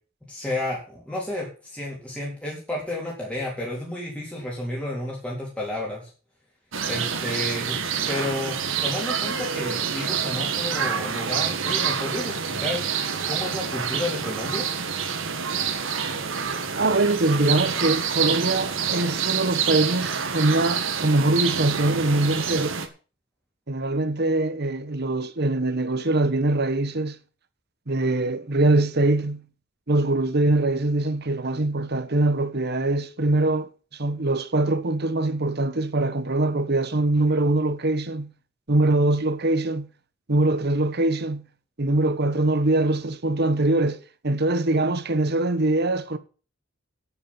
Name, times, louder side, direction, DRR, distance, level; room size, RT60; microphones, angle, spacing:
voice 1, 0.3-6.1 6.9-8.6 8.8-12.8 13.3-14.7, left 1 dB, 5° left, 3.7 m, -31 dB
sound 1, 6.7-22.9, right 7 dB, 80° right, 1.8 m, -27 dB
voice 2, 16.7-22.8 23.7-27.2 27.9-29.5 29.9-38.3 38.7-39.9 40.3-41.5 41.8-46.2, right 2 dB, 55° right, 1.3 m, -23 dB
9.9 x 8.7 x 7.2 m
head